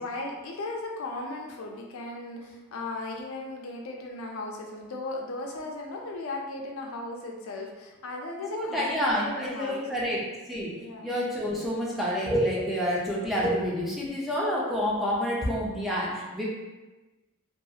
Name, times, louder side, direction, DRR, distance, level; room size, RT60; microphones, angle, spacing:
voice 1, 0.0-9.9 10.8-11.1, left 2 dB, 70° left, 0 dB, 0.4 m, -36 dB
voice 2, 8.5-10.2 10.5-10.7 11.0-16.4, equal, ahead, -6 dB, 0.4 m, -28 dB
2.3 x 2.3 x 2.7 m, 1.2 s
head